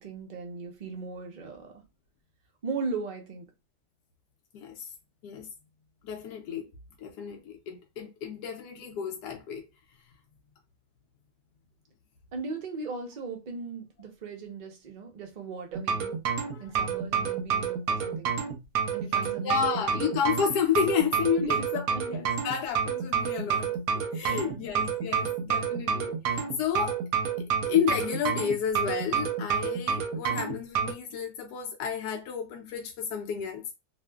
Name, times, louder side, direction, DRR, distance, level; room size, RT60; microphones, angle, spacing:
voice 1, 0.0-1.7 2.6-3.4 12.3-16.1 16.6-18.4 18.9-19.5 19.9-20.1 21.4-21.5 21.9-22.0 24.3-24.6, right 4 dB, 85° right, 0.4 m, -38 dB
voice 2, 4.5-4.9 5.2-5.5 6.0-6.7 7.0-9.7 16.5-16.8 19.4-23.7 24.1-27.0 27.7-33.6, left 8 dB, 75° left, 1.1 m, -31 dB
sound 1, 15.7-30.9, right 7 dB, 70° right, 1.0 m, -29 dB
2.8 x 2.5 x 2.2 m
omnidirectional pair, 1.8 m